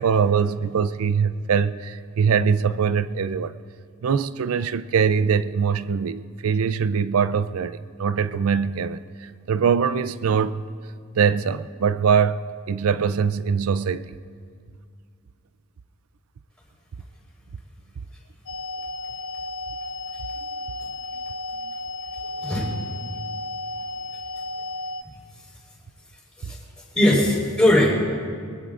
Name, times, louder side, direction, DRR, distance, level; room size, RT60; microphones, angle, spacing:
voice 1, 0.0-3.5 4.0-10.7 11.2-14.1 26.4-26.5, right 6 dB, 75° right, 0.4 m, -22 dB
sound 1, 18.5-25.0, left 2 dB, 65° left, 0.5 m, -33 dB
voice 2, 22.4-22.7 26.4-26.6 26.9-27.9, left 1 dB, 5° left, 4.4 m, -19 dB
23.0 x 19.5 x 2.5 m
head